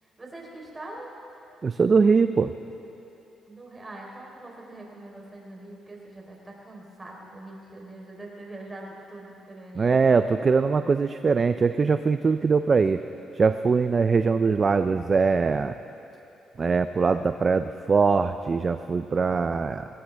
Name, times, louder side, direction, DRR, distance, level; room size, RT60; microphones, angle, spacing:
voice 1, 0.2-1.1 3.5-10.0, right 2 dB, 20° right, -2 dB, 3.8 m, -43 dB
voice 2, 1.6-2.5 9.8-13.0 13.3-15.7 16.6-19.9, right 5 dB, 35° right, 10 dB, 0.4 m, -22 dB
20.5 x 18.0 x 3.4 m, 3.0 s
cardioid pair, 90°, 0 cm